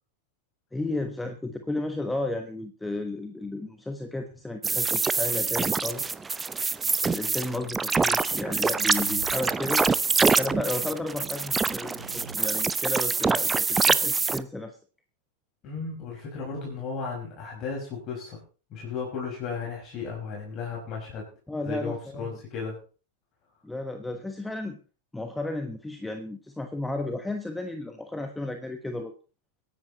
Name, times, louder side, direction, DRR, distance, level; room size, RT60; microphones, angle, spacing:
voice 1, 0.7-6.1 7.0-9.9 10.4-14.8 21.5-22.4 23.6-24.8 25.1-29.1, left 2 dB, 5° left, 7 dB, 1.2 m, -33 dB
sound 1, 4.6-14.4, right 4 dB, 15° right, 0.7 m, -25 dB
sound 2, 8.3-9.4 9.7-10.1 11.3-12.4, right 5 dB, 75° right, 0.9 m, -44 dB
voice 2, 15.6-18.4 18.7-21.2 21.6-22.8, left 5 dB, 35° left, -3 dB, 5.3 m, -35 dB
23.0 x 10.5 x 3.0 m, 0.35 s
figure-of-eight pair, 90°, 0 cm